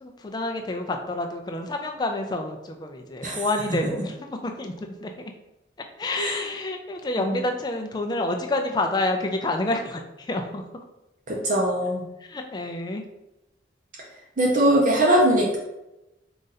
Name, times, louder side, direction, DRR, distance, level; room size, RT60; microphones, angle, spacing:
voice 1, 0.0-4.1 4.4-4.7 5.0-5.3 6.0-10.6 12.2-13.0, left 2 dB, 20° left, 3 dB, 0.4 m, -28 dB
voice 2, 11.3-12.1 14.4-15.6, right 1 dB, 45° right, -2 dB, 0.6 m, -21 dB
3.9 x 2.5 x 4.0 m, 0.95 s
head